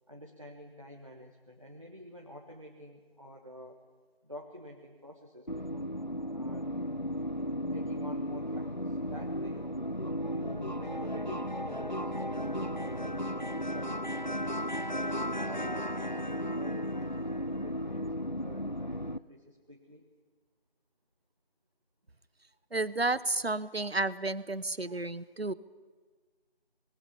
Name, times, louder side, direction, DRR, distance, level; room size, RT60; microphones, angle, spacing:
voice 1, 0.1-3.8 4.2-5.9 6.3-6.7 7.7-9.7 10.2-14.6 15.5-20.1 23.1-23.2, equal, 30° right, 0 dB, 1.7 m, -49 dB
sound 1, 5.5-19.2, equal, 45° left, 0.7 m, -35 dB
sound 2, 12.3-18.1, equal, 25° left, 3.5 m, -60 dB
voice 2, 22.7-25.5, right 2 dB, 70° right, 16 dB, 1.1 m, -31 dB
25.5 x 19.5 x 7.1 m, 1.5 s
figure-of-eight pair, 180°, 32 cm